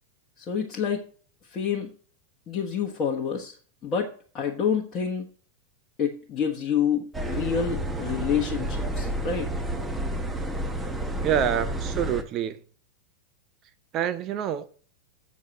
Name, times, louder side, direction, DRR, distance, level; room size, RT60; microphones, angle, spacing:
voice 1, 0.5-1.0 1.5-1.9 2.5-3.5 3.8-5.3 6.0-9.5, left 7 dB, 30° left, 1.3 m, -28 dB
sound 1, 7.1-12.2, right 1 dB, 10° right, 1.1 m, -30 dB
voice 2, 11.2-12.6 13.9-14.8, right 9 dB, 35° right, 0.6 m, -27 dB
7.5 x 6.3 x 6.5 m
figure-of-eight pair, 90°, 0 cm